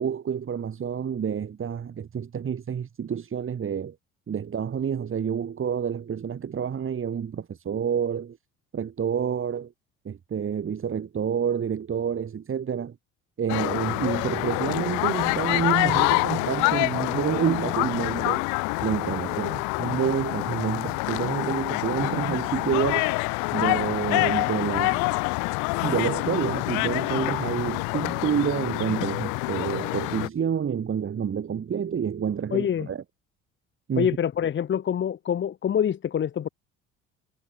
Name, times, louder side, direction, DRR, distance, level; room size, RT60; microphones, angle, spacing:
voice 1, 0.0-3.9 4.3-8.4 8.7-9.7 10.0-12.9 13.4-18.5 18.8-23.1 23.5-25.1 25.8-33.0 33.9-34.2, right 7 dB, 45° right, 6.9 m, -28 dB
sound 1, 13.5-30.3, left 29 dB, 75° left, 1.3 m, -26 dB
voice 2, 32.5-32.9 34.0-36.5, left 9 dB, 40° left, 1.1 m, -25 dB
supercardioid pair, 70°, 30 cm